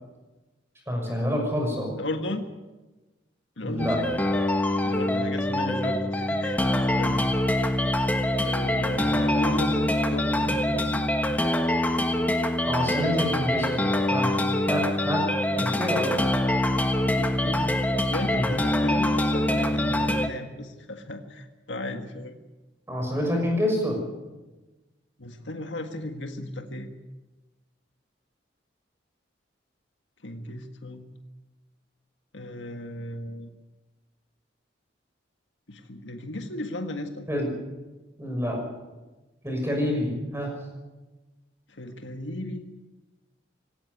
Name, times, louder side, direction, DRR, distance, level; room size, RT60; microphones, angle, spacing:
voice 1, 0.9-1.9 3.6-4.0 12.6-14.4 14.7-15.3 15.5-16.2 18.3-18.6 22.9-24.1 37.3-37.5 38.2-38.6 39.4-40.5, equal, 15° right, 1 dB, 6.1 m, -27 dB
voice 2, 2.0-2.5 3.6-4.0 4.8-7.3 7.5-7.8 8.4-11.1 17.0-17.8 18.1-22.4 25.2-26.9 30.2-31.1 32.3-33.5 35.7-37.3 41.7-42.7, left 1 dB, 90° left, 5 dB, 1.7 m, -35 dB
sound 1, 3.8-20.3, left 1 dB, 10° left, 1.3 m, -24 dB
18.0 x 17.5 x 9.5 m, 1.2 s
head